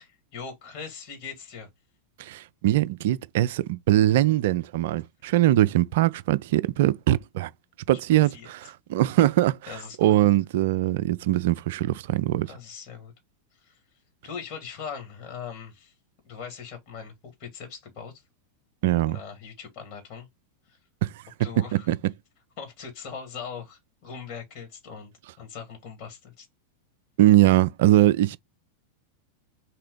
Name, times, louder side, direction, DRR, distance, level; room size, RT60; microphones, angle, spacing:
voice 1, 0.0-1.7 8.3-8.5 9.7-10.1 12.5-13.1 13.6-13.8 14.2-15.9 16.2-18.1 19.1-20.3 20.7-20.8 21.4-21.9 22.6-25.1 25.4-26.5, left 6 dB, 45° left, 2.3 m, -40 dB
voice 2, 2.2-7.5 7.9-12.5 18.8-19.2 21.0-21.1 21.4-22.0 27.2-28.4, right 14 dB, 55° right, 0.3 m, -22 dB
4.3 x 3.8 x 3.3 m
figure-of-eight pair, 90°, 0 cm